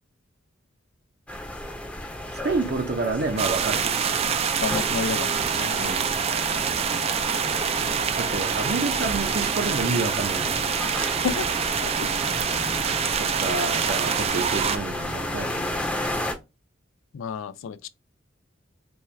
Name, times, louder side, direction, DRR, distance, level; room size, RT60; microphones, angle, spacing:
sound 1, 1.3-16.3, left 1 dB, 5° left, 0.6 m, -33 dB
voice 1, 2.3-4.1 5.8-6.2 8.2-10.5 13.2-15.8, right 3 dB, 55° right, 0.7 m, -29 dB
sound 2, 3.4-14.8, right 7 dB, 30° right, 0.3 m, -26 dB
voice 2, 4.6-5.9 11.2-11.5 11.8-12.1 17.1-17.9, left 6 dB, 85° left, 0.4 m, -31 dB
4.4 x 2.3 x 3.3 m
head